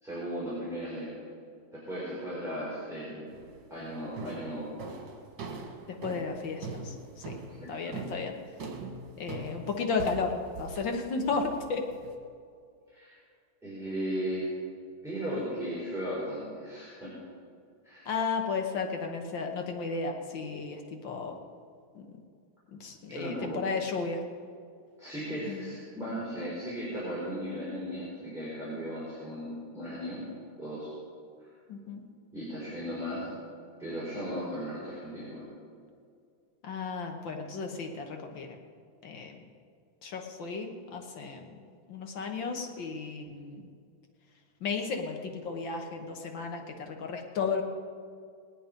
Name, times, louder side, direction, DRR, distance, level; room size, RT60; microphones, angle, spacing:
voice 1, 0.0-1.2 1.7-3.3 3.7-4.7 7.5-8.1 12.9-13.2 13.6-14.5 15.0-17.1 17.8-18.1 23.1-23.6 25.0-30.2 30.6-30.9 32.3-33.3 33.8-35.4, equal, ahead, -10 dB, 4.8 m, -36 dB
sound 1, 3.3-3.7 4.2-12.1, right 4 dB, 65° right, 2.3 m, -42 dB
voice 2, 6.0-7.0 7.3-7.4 7.7-8.3 9.2-11.8 18.1-21.4 22.0-22.1 22.7-24.2 25.5-25.7 31.7-32.0 36.6-38.6 39.0-39.4 40.0-41.6 41.9-43.7 44.6-47.6, left 4 dB, 70° left, 3 dB, 1.9 m, -34 dB
20.0 x 10.5 x 5.2 m, 2.3 s
omnidirectional pair, 2.2 m